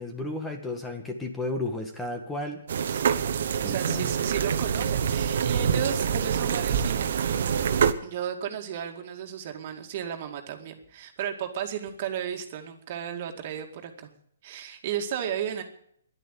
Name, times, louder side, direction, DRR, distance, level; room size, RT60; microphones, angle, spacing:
voice 1, 0.0-2.6 3.6-4.1, left 2 dB, 10° left, 4 dB, 1.7 m, -33 dB
sound 1, 2.7-7.9, right 7 dB, 60° right, 1.2 m, -26 dB
voice 2, 2.9-7.2 8.0-14.1 14.4-15.6, right 9 dB, 45° right, 4 dB, 2.2 m, -34 dB
11.0 x 10.5 x 9.9 m, 0.67 s
hypercardioid pair, 145°, 0 cm